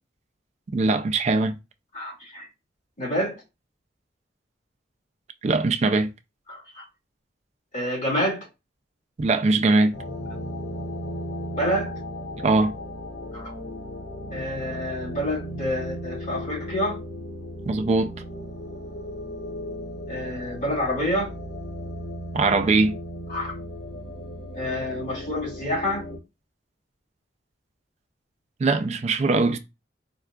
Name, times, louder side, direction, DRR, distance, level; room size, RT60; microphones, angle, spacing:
voice 1, 0.7-1.5 5.4-6.1 9.2-9.9 12.4-12.7 17.7-18.1 22.3-23.0 28.6-29.6, right 3 dB, 35° right, 0.3 m, -21 dB
voice 2, 1.9-2.5 3.0-3.4 6.5-6.8 7.7-8.5 11.5-11.9 13.3-13.5 14.3-17.0 20.1-21.3 23.3-23.5 24.5-26.0, equal, 45° left, 2.2 m, -28 dB
sound 1, 9.9-26.2, equal, 65° left, 1.4 m, -36 dB
4.5 x 2.3 x 2.3 m
head